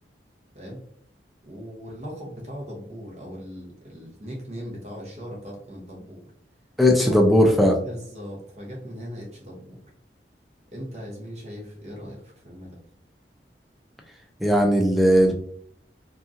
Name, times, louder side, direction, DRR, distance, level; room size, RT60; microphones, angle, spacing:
voice 1, 1.4-6.2 7.1-7.2 7.8-9.8 10.7-12.8, equal, 40° right, -2 dB, 0.7 m, -39 dB
voice 2, 6.8-7.8 14.4-15.3, equal, ahead, 2 dB, 0.3 m, -17 dB
2.9 x 2.4 x 2.4 m, 0.63 s
head